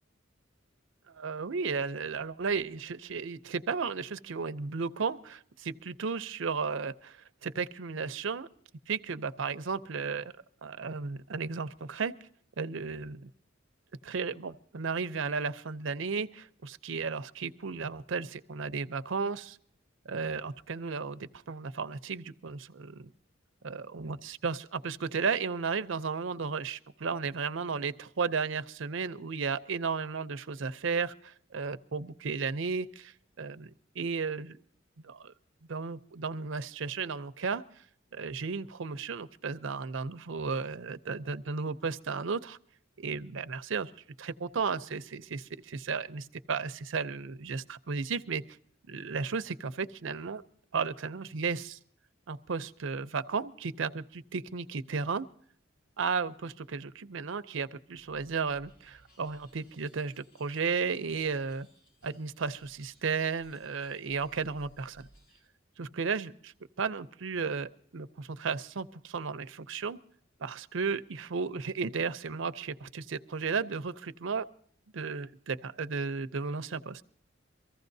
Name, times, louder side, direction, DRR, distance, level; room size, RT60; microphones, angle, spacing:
voice 1, 1.1-8.5 8.9-10.3 10.6-12.1 12.6-13.3 14.0-19.6 20.0-23.1 23.6-34.6 35.0-35.3 35.7-37.6 38.1-42.6 43.0-43.9 44.2-48.4 48.9-50.4 50.7-51.8 52.3-55.3 56.0-61.7 62.0-65.1 65.8-70.0 70.4-74.5 74.9-77.0, right 5 dB, 70° right, 12 dB, 0.6 m, -34 dB
sound 1, 57.9-65.5, equal, 55° left, 4.4 m, -62 dB
24.0 x 15.0 x 2.7 m, 0.62 s
head